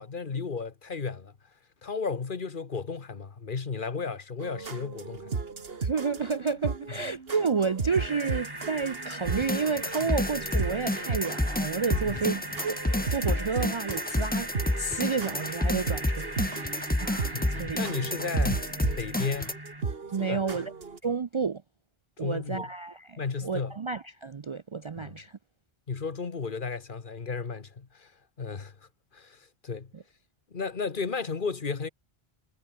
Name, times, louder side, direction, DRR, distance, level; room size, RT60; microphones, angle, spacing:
voice 1, 0.0-1.3 1.8-5.3 10.0-10.1 12.1-12.2 17.3-18.7 19.0-19.6 20.2-20.6 22.2-22.7 23.2-23.7 25.0-25.1 25.9-29.9 30.5-31.9, left 5 dB, 55° left, 1.5 m, -34 dB
sound 1, 4.4-21.0, right 4 dB, 70° right, 2.0 m, -36 dB
voice 2, 5.8-14.5 14.8-17.8 20.1-20.7 21.0-21.6 22.2-25.4 29.9-30.0, right 5 dB, 40° right, 0.5 m, -31 dB
sound 2, 7.9-19.8, right 1 dB, 20° right, 2.4 m, -40 dB
sound 3, 9.3-19.5, left 1 dB, 10° left, 0.9 m, -30 dB
omnidirectional pair, 1.0 m